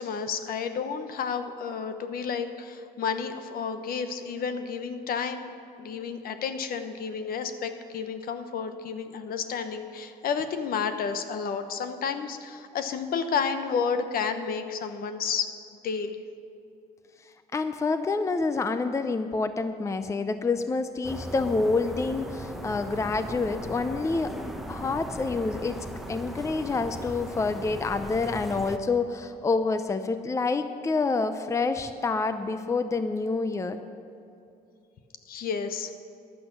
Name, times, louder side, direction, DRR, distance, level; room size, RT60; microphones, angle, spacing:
voice 1, 0.0-5.5 5.8-15.5 15.8-16.2 35.3-35.9, left 6 dB, 60° left, 9 dB, 1.0 m, -31 dB
voice 2, 17.5-24.3 24.7-25.8 26.1-33.8, left 3 dB, 15° left, 9 dB, 0.6 m, -27 dB
sound 1, 21.0-28.8, right 1 dB, ahead, 0.9 m, -38 dB
14.5 x 11.0 x 6.0 m, 2.6 s
cardioid pair, 110°, 17 cm